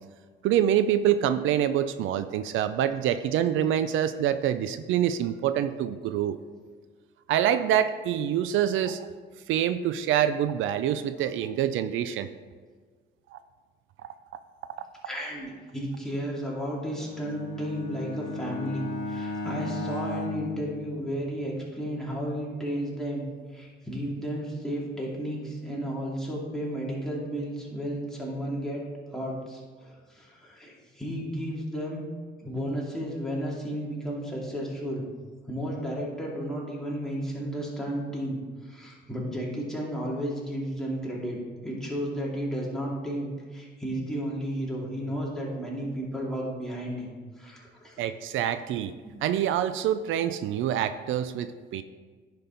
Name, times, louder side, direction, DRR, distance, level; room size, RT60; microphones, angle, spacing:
voice 1, 0.4-6.4 7.3-9.1 9.5-12.3 13.3-13.4 48.0-48.9 49.2-51.8, right 10 dB, 85° right, 11 dB, 0.4 m, -26 dB
voice 2, 15.0-23.3 23.5-28.8 29.1-32.1 32.4-35.0 35.4-38.4 38.6-41.4 41.6-47.1 47.4-48.0 49.0-49.2, equal, ahead, -5 dB, 2.5 m, -33 dB
Bowed string instrument, 16.9-21.5, left 3 dB, 55° left, 2.2 m, -35 dB
10.0 x 5.3 x 3.9 m, 1.5 s
cardioid pair, 90°, 20 cm